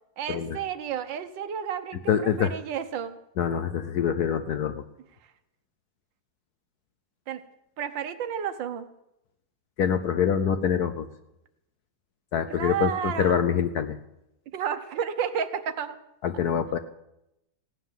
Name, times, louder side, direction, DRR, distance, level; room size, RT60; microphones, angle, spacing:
voice 1, 0.2-3.2 5.2-5.3 7.3-7.4 7.8-8.9 12.5-13.4 14.5-16.0, right 8 dB, 70° right, 10 dB, 1.6 m, -31 dB
voice 2, 2.1-2.5 3.4-4.8 9.8-11.1 12.3-14.0 16.2-16.8, left 8 dB, 65° left, 10 dB, 1.0 m, -25 dB
16.5 x 9.1 x 7.4 m, 0.86 s
omnidirectional pair, 2.2 m